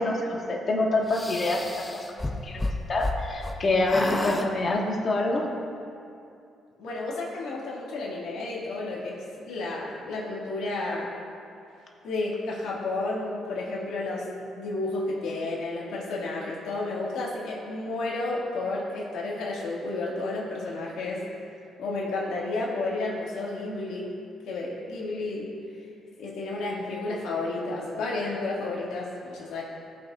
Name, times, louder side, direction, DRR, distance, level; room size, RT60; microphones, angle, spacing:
voice 1, 0.0-5.5, left 2 dB, 45° left, -1 dB, 1.5 m, -26 dB
sound 1, 1.1-3.6 3.9-4.5, left 2 dB, 15° left, 0.7 m, -31 dB
voice 2, 6.8-11.1 12.0-21.3 21.8-24.1 24.5-25.5 26.2-29.6, left 2 dB, 85° left, -5 dB, 2.0 m, -31 dB
17.0 x 6.1 x 2.5 m, 2.5 s
cardioid pair, 90°, 0 cm